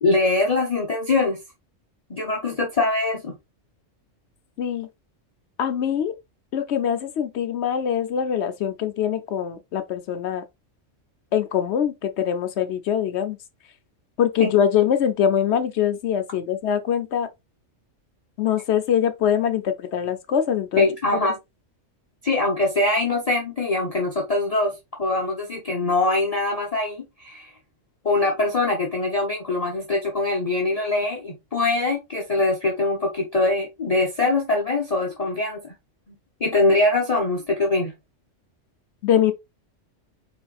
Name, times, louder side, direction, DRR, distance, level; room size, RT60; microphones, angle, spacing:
voice 1, 0.0-1.4 2.1-3.4 14.4-14.5 20.8-21.4 22.2-27.5 28.0-35.7 36.4-37.9, left 2 dB, 35° left, 0.9 m, -23 dB
voice 2, 4.6-4.9 5.6-6.1 6.5-10.4 11.3-13.4 14.2-17.3 18.4-20.9 39.0-39.3, left 9 dB, 65° left, 0.9 m, -23 dB
4.4 x 4.2 x 2.4 m
omnidirectional pair, 1.3 m